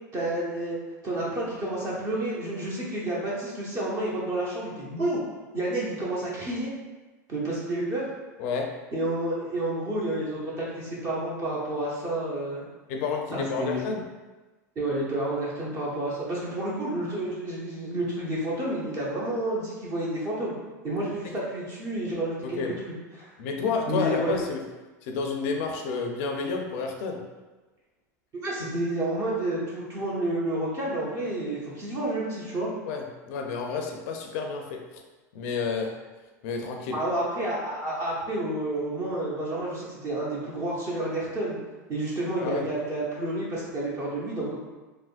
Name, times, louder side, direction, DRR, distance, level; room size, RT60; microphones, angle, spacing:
voice 1, 0.1-0.8 1.0-5.2 5.5-6.7 7.3-8.1 8.9-12.7 13.3-13.8 14.7-20.6 20.8-22.6 23.2-23.3 23.9-24.3 28.3-32.7 36.9-41.6 41.9-44.6, right 1 dB, 35° right, -6 dB, 0.9 m, -30 dB
voice 2, 12.9-14.0 22.4-22.7 23.4-24.6 25.0-27.2 32.9-34.8 35.3-36.0 36.4-37.0 42.4-42.6, left 4 dB, 60° left, 2 dB, 0.5 m, -30 dB
3.4 x 2.2 x 2.4 m, 1.2 s
hypercardioid pair, 110°, 9 cm